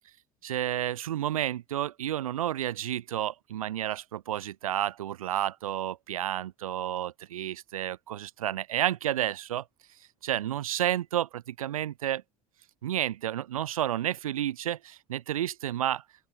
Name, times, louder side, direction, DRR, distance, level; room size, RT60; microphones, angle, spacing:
voice 1, 0.4-9.6 10.2-12.2 12.8-16.0, right 12 dB, 90° right, 3.8 m, -31 dB
open air
hypercardioid pair, 70°, 17 cm